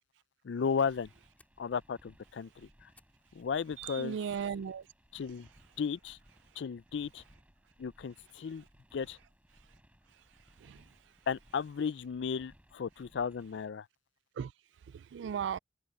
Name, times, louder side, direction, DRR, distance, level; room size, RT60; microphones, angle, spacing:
voice 1, 0.4-1.1 1.6-2.9 3.3-4.2 5.1-5.5 5.8-6.2 6.6-7.2 7.8-8.6 8.9-9.2 11.3-13.9, left 6 dB, 70° left, 0.4 m, -35 dB
sound 1, 0.9-13.7, equal, 10° right, 6.1 m, -63 dB
Fire, 1.3-4.3 4.7-5.1 5.5-5.6 6.2-6.5, left 2 dB, 10° left, 2.9 m, -70 dB
voice 2, 3.8-4.8 10.6-10.8 14.4-14.5 14.9-15.6, right 7 dB, 75° right, 0.3 m, -36 dB
head